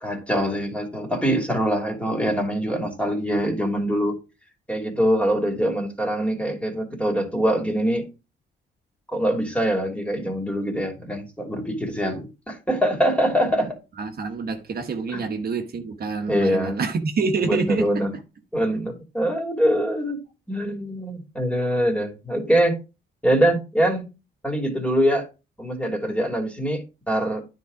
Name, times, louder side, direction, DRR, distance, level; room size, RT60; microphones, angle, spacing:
voice 1, 0.0-4.2 4.7-8.1 9.1-13.8 15.1-15.2 16.3-16.8 17.4-18.1 18.5-20.2 20.5-22.8 23.2-24.1 24.4-25.2 25.6-27.4, equal, 5° left, 2.6 m, -23 dB
voice 2, 14.0-17.9, right 4 dB, 50° right, 1.3 m, -27 dB
9.4 x 4.1 x 4.9 m
cardioid pair, 90°, 20 cm